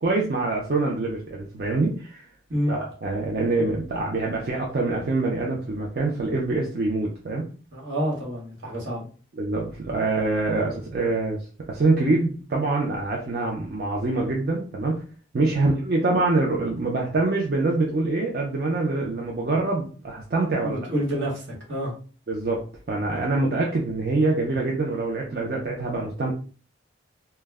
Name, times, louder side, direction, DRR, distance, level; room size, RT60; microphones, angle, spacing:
voice 1, 0.0-2.3 2.7-7.5 9.4-11.4 11.7-15.0 15.3-20.8 22.3-22.6 22.9-26.3, right 2 dB, 55° right, -2 dB, 0.4 m, -25 dB
voice 2, 7.7-9.1 15.6-15.7 20.6-21.9, equal, 80° right, -2 dB, 1.1 m, -28 dB
2.2 x 2.1 x 3.3 m, 0.39 s
head